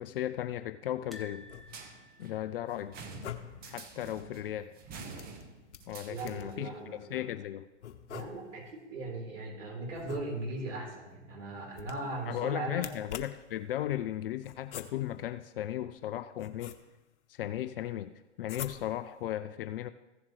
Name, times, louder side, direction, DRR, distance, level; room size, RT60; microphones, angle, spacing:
voice 1, 0.0-1.5 2.2-3.0 3.6-4.7 5.9-7.7 12.2-16.8 17.3-18.1 18.4-19.9, left 12 dB, 50° left, 12 dB, 0.5 m, -36 dB
sound 1, 1.1-4.2 4.4-4.6 4.9-5.0 6.2-6.7 7.3-7.4, left 2 dB, ahead, 0.6 m, -54 dB
sound 2, 1.4-2.1 3.0-3.8 5.2-6.6 7.8-8.7 9.9-10.7 11.7-12.3 12.7-13.6 14.4-15.2 16.0-17.1 18.4-19.1, left 9 dB, 70° left, 1.0 m, -46 dB
sound 3, 1.7-6.7, right 4 dB, 25° right, 1.2 m, -48 dB
voice 2, 6.1-7.2 8.1-12.9, right 2 dB, 85° right, -2 dB, 4.1 m, -38 dB
15.5 x 7.2 x 3.2 m, 1.0 s
hypercardioid pair, 125°, 36 cm